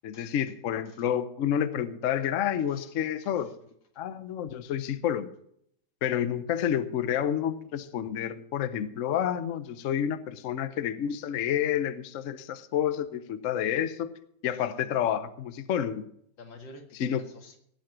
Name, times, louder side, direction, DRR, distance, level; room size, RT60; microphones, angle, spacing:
voice 1, 0.0-3.5 4.0-5.3 6.0-14.1 14.4-16.0 16.9-17.2, left 9 dB, 60° left, 0.9 m, -29 dB
voice 2, 14.7-15.1 16.4-17.6, left 2 dB, 80° left, 2.6 m, -49 dB
17.5 x 7.8 x 6.0 m
omnidirectional pair, 2.0 m